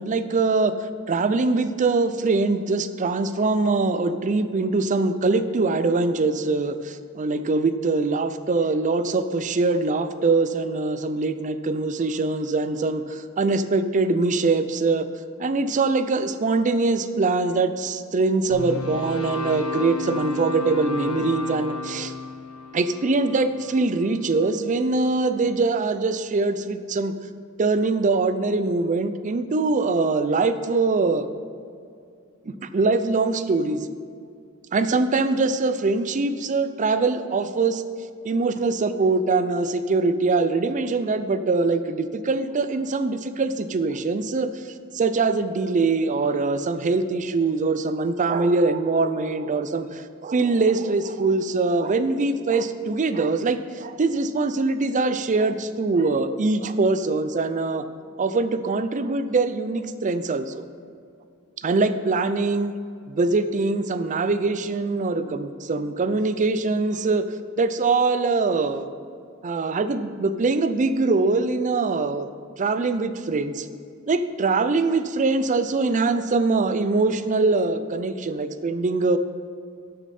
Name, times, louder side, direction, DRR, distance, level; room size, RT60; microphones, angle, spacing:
voice 1, 0.0-15.1 15.4-22.1 22.7-27.1 27.6-31.3 32.5-33.9 34.7-37.8 38.2-44.5 44.9-57.8 58.2-60.6 61.6-62.7 63.1-67.2 67.6-68.9 69.4-72.3 72.6-73.7 74.1-79.2, right 3 dB, 35° right, 11 dB, 0.4 m, -23 dB
sound 1, 18.5-24.7, left 4 dB, 80° left, 1.4 m, -33 dB
12.5 x 6.6 x 4.3 m, 2.4 s
head